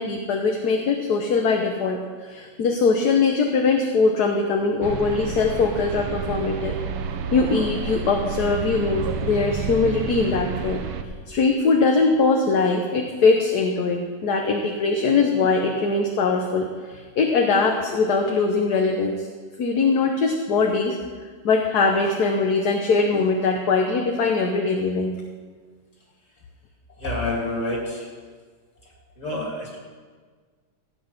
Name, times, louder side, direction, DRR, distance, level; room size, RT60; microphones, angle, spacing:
voice 1, 0.0-6.8 7.3-10.8 11.3-19.3 19.6-21.0 21.4-25.2, left 4 dB, 55° left, 2 dB, 1.4 m, -21 dB
sound 1, 4.8-11.0, right 5 dB, 75° right, 1.6 m, -30 dB
voice 2, 27.0-28.1 29.2-29.8, left 1 dB, 35° left, -2 dB, 3.2 m, -28 dB
16.5 x 8.8 x 5.9 m, 1.5 s
omnidirectional pair, 2.2 m